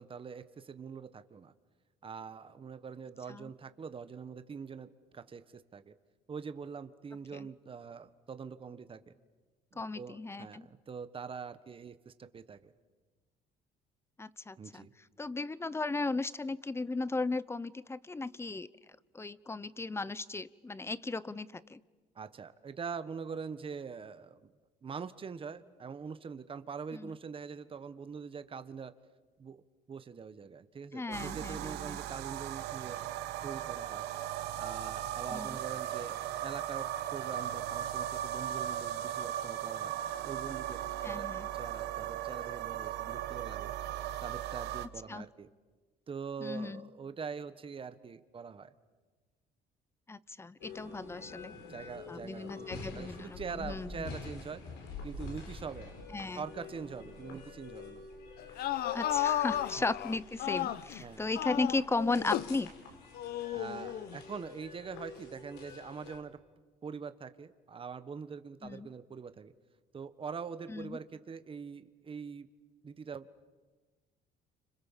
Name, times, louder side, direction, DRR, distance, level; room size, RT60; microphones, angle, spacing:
voice 1, 0.0-1.5 2.0-4.9 5.1-5.9 6.3-9.1 9.7-12.7 14.6-14.9 22.1-24.5 24.8-28.9 29.4-29.6 29.9-33.0 33.4-34.0 34.5-39.9 40.2-41.3 41.5-43.7 44.2-45.5 46.1-48.7 51.6-54.6 55.0-55.9 56.3-58.1 61.0-61.3 63.5-66.4 66.8-69.5 69.9-72.5 72.8-73.3, right 6 dB, 30° right, 11 dB, 1.4 m, -43 dB
voice 2, 9.8-10.7 14.2-14.9 15.2-18.7 19.1-21.8 26.9-27.1 30.9-32.0 35.3-35.6 41.0-41.5 45.1-45.3 46.4-46.9 50.1-51.5 52.1-54.1 56.1-56.4 58.9-62.7 68.6-68.9 70.7-71.0, left 3 dB, 15° left, 18 dB, 0.8 m, -36 dB
sound 1, 31.1-44.9, right 11 dB, 85° right, 1.2 m, -37 dB
sound 2, 50.6-66.2, left 4 dB, 85° left, 5.0 m, -47 dB
sound 3, 58.4-61.0 61.3-62.6 63.2-64.2, left 12 dB, 65° left, 0.9 m, -34 dB
30.0 x 26.5 x 7.4 m, 1.3 s
cardioid pair, 110°, 17 cm